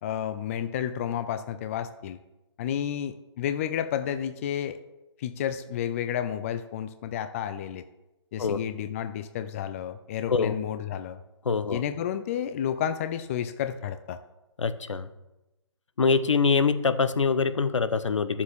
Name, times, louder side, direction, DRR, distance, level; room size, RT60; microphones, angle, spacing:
voice 1, 0.0-2.2 2.6-4.8 5.2-7.8 8.3-11.2 11.7-14.2, left 9 dB, 30° left, 10 dB, 0.5 m, -31 dB
voice 2, 11.4-11.8 14.6-15.1 16.0-18.4, left 5 dB, 80° left, 12 dB, 0.9 m, -24 dB
11.0 x 7.2 x 4.7 m, 0.98 s
hypercardioid pair, 150°, 15 cm